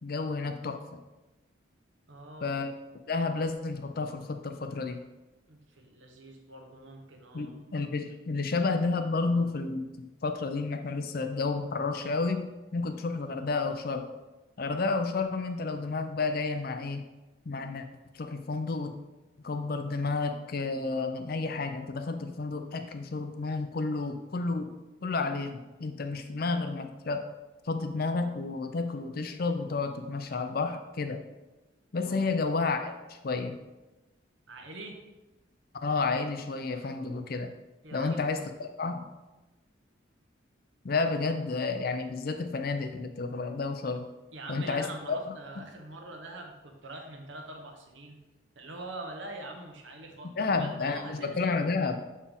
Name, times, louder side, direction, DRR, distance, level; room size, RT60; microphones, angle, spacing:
voice 1, 0.0-1.0 2.4-2.7 3.1-5.0 7.3-14.1 14.6-17.0 17.5-17.8 18.1-18.9 19.4-24.7 25.0-27.3 27.6-31.2 31.9-33.6 35.8-37.5 37.9-39.1 40.8-44.1 44.5-45.3 50.4-52.0, left 3 dB, 50° left, 7 dB, 0.5 m, -31 dB
voice 2, 2.1-2.5 5.5-7.5 31.9-32.3 34.5-35.0 37.8-38.4 44.3-48.2 48.5-51.6, right 2 dB, 70° right, 2 dB, 1.0 m, -44 dB
7.1 x 4.3 x 3.5 m, 1.1 s
head